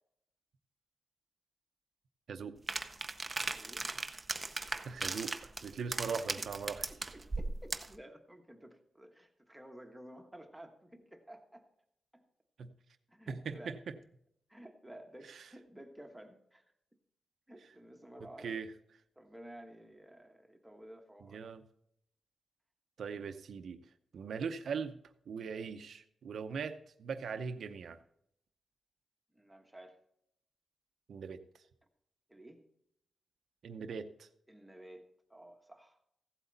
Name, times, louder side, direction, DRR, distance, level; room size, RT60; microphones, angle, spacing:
sound 1, 2.7-8.0, right 3 dB, 20° right, 0.6 m, -38 dB
voice 1, 3.5-3.9 6.1-6.5 6.9-11.7 12.1-12.2 13.1-13.8 14.5-16.6 17.5-18.6 19.2-21.4 29.3-30.0 32.3-32.7 34.5-36.0, right 1 dB, 5° right, 4 dB, 1.2 m, -53 dB
voice 2, 4.8-5.3 5.6-6.8 12.6-12.7 13.3-13.7 18.4-18.7 21.3-21.6 23.0-23.8 24.1-24.9 25.3-28.0 31.1-31.4 33.6-34.3, right 6 dB, 65° right, 8 dB, 0.7 m, -40 dB
15.5 x 8.1 x 4.0 m, 0.75 s
wide cardioid pair, 155°, 0 cm